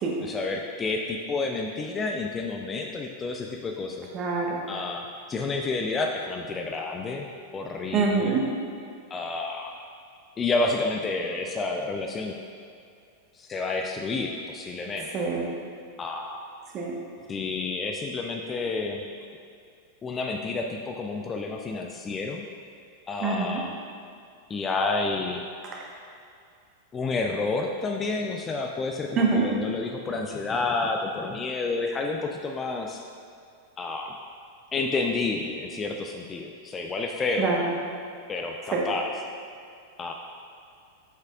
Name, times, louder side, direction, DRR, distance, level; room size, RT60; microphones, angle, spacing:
voice 1, 0.2-4.1 4.7-8.4 9.1-9.7 10.4-12.3 13.4-15.1 16.0-16.4 17.3-19.0 20.0-22.5 23.1-23.7 24.5-25.5 26.9-33.0 33.8-34.1 34.7-37.5 38.3-39.1 40.0-40.1, left 3 dB, 20° left, 2 dB, 0.4 m, -30 dB
voice 2, 4.1-4.6 7.9-8.5 15.1-15.5 16.7-16.9 23.2-23.6 29.2-29.4 37.4-37.8 38.7-38.8, right 4 dB, 30° right, -1 dB, 1.2 m, -25 dB
8.1 x 6.5 x 2.4 m, 2.4 s
figure-of-eight pair, 90°, 0 cm